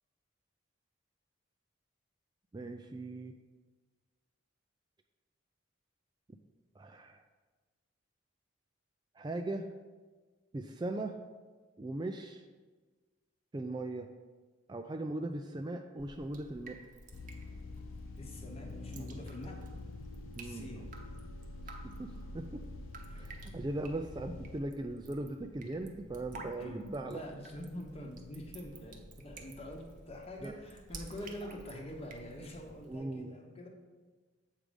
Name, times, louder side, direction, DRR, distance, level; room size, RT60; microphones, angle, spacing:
voice 1, 2.5-3.3 6.8-7.2 9.2-9.7 10.5-11.2 11.8-12.4 13.5-14.1 14.7-16.8 18.9-19.1 20.4-20.7 22.0-22.6 23.2-27.2 30.4-30.5 32.8-33.3, right 2 dB, 20° right, 5 dB, 0.3 m, -39 dB
Drip, 16.0-33.0, right 2 dB, 40° right, 0.8 m, -52 dB
sound 1, 17.1-24.6, left 2 dB, 80° left, 0.5 m, -46 dB
voice 2, 18.2-19.6 20.4-21.0 23.1-23.2 26.3-33.7, equal, 30° left, 1 dB, 1.0 m, -45 dB
7.5 x 4.9 x 5.2 m, 1.3 s
head